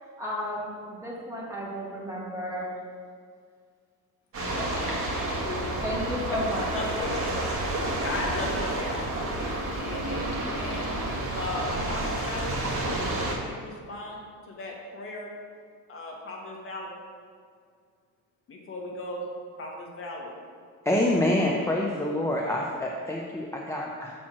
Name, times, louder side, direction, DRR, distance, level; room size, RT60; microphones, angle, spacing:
voice 1, 0.2-2.7 4.6-4.7 5.8-6.7, equal, 10° right, -5 dB, 1.5 m, -33 dB
sound 1, 4.3-13.3, right 1 dB, 45° right, 1.5 m, -30 dB
voice 2, 4.4-5.7 6.7-7.2 7.8-9.0 9.3-10.9 11.3-15.4 15.9-17.0 18.5-19.3 19.6-20.3, left 2 dB, 45° left, 0 dB, 1.3 m, -37 dB
voice 3, 20.9-24.1, left 1 dB, 10° left, -2 dB, 0.4 m, -26 dB
7.3 x 4.5 x 5.9 m, 2.1 s
cardioid pair, 160°, 31 cm